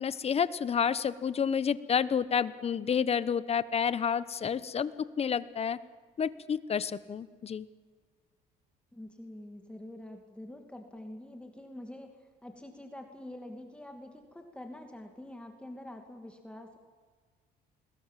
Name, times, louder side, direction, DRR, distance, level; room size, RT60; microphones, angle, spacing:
voice 1, 0.0-5.8 6.2-7.7, left 7 dB, 35° left, 16 dB, 1.1 m, -30 dB
voice 2, 8.9-12.1 12.4-16.8, left 1 dB, 5° left, 4 dB, 2.6 m, -46 dB
29.0 x 21.0 x 7.6 m, 1.5 s
cardioid pair, 110°, 17 cm